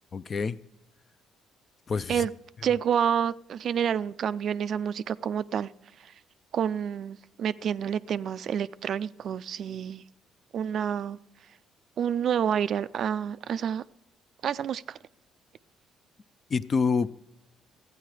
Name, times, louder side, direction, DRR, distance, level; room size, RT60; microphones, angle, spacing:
voice 1, 0.1-0.6 1.9-2.3 16.5-17.1, left 5 dB, 35° left, 0.4 m, -27 dB
voice 2, 2.6-5.7 6.5-10.0 10.5-11.2 12.0-13.8 14.4-15.0, right 8 dB, 55° right, 0.3 m, -28 dB
13.5 x 9.2 x 4.8 m
cardioid pair, 115°, 0 cm